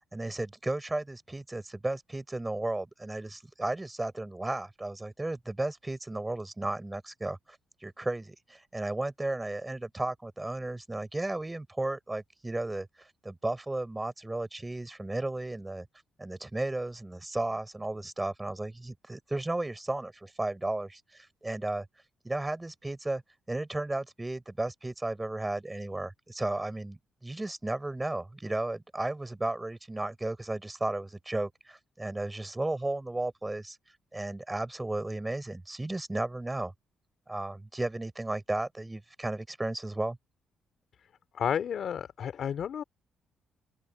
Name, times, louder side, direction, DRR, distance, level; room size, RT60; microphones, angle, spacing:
voice 1, 0.1-15.9 16.2-21.8 22.2-23.2 23.5-33.8 34.1-36.7 37.3-40.2, right 2 dB, 15° right, 4.9 m, -34 dB
voice 2, 41.3-42.8, left 8 dB, 60° left, 2.7 m, -31 dB
open air
cardioid pair, 75°, 0 cm